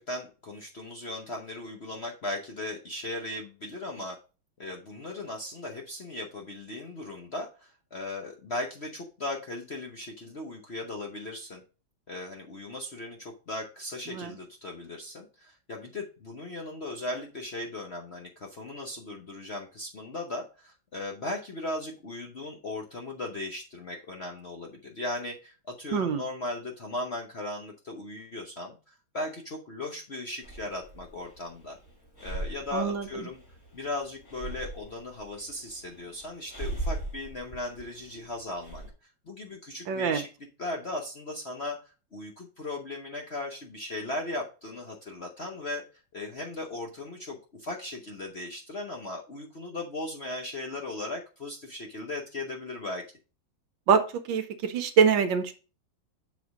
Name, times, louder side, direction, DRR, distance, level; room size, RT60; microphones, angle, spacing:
voice 1, 0.0-4.2 4.6-11.6 12.1-31.8 32.2-33.4 33.7-38.8 39.3-40.3 40.6-41.8 42.1-45.8 46.1-53.0, left 2 dB, 45° left, 1 dB, 0.8 m, -37 dB
voice 2, 25.9-26.2 32.7-33.3 39.9-40.2 53.9-55.5, right 6 dB, 70° right, 9 dB, 1.4 m, -25 dB
Breathing, 30.4-38.9, right 2 dB, 30° left, 3.0 m, -40 dB
7.1 x 4.2 x 4.9 m, 0.34 s
omnidirectional pair, 2.2 m